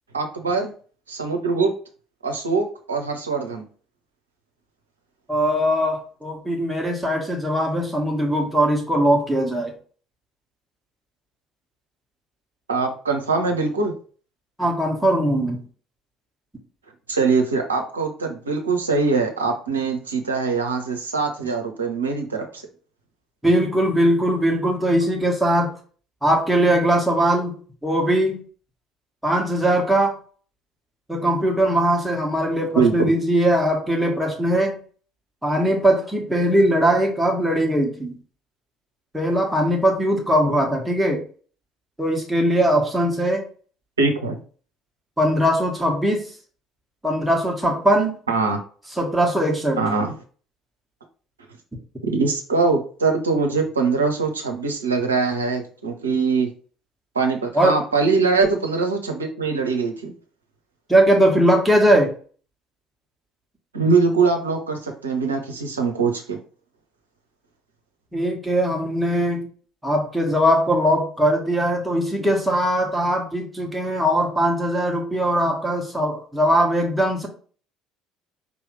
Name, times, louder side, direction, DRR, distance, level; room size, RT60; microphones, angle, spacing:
voice 1, 0.1-0.7 1.1-1.7 2.2-3.6 12.7-13.9 17.1-22.6 32.7-33.1 44.0-44.4 48.3-48.6 49.8-50.1 52.0-56.5 57.1-60.1 63.7-66.4, right 4 dB, 80° right, 4 dB, 0.7 m, -22 dB
voice 2, 5.3-9.7 14.6-15.6 23.4-25.7 26.2-27.5 27.8-28.4 29.2-30.1 31.1-34.7 35.4-38.2 39.1-41.2 42.0-43.4 45.2-46.3 47.0-48.2 49.0-49.8 57.5-57.8 60.9-62.1 68.1-69.4 69.8-77.3, equal, 5° right, 1 dB, 1.5 m, -20 dB
5.2 x 3.1 x 3.2 m, 0.41 s
figure-of-eight pair, 55°, 0 cm